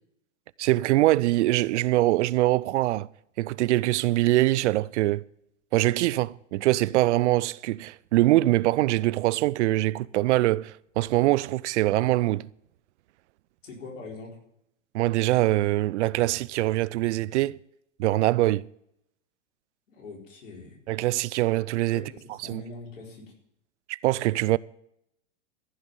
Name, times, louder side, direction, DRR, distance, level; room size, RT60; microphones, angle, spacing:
voice 1, 0.6-3.1 3.4-5.2 5.7-12.5 14.9-17.6 18.0-18.7 20.9-22.0 22.5-22.6 23.9-24.6, right 17 dB, 70° right, 0.5 m, -23 dB
voice 2, 13.6-14.4 19.9-20.8 21.9-23.3, left 3 dB, 85° left, 4.5 m, -42 dB
14.5 x 6.0 x 8.0 m
hypercardioid pair, 115°, 36 cm